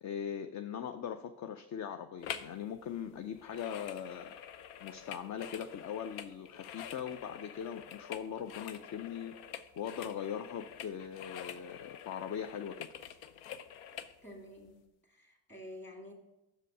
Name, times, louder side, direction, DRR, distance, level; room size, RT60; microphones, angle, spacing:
voice 1, 0.0-4.3 4.8-9.3 9.8-12.9, left 8 dB, 35° left, 8 dB, 0.4 m, -40 dB
sound 1, 2.2-2.6 2.8-14.1 14.7-14.8, left 9 dB, 80° left, 0.7 m, -47 dB
voice 2, 14.2-16.1, left 1 dB, 20° left, 1 dB, 2.4 m, -50 dB
6.4 x 5.1 x 6.5 m, 0.96 s
supercardioid pair, 85°, 50 cm